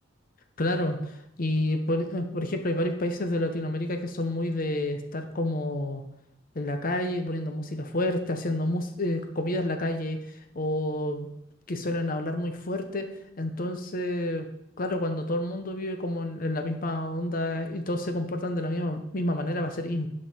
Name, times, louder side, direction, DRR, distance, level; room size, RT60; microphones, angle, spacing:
voice 1, 0.6-6.0 6.5-10.2 10.5-11.3 11.7-13.1 13.4-14.5 14.8-20.1, left 1 dB, 45° left, 7 dB, 0.8 m, -29 dB
11.5 x 5.4 x 4.3 m, 0.82 s
head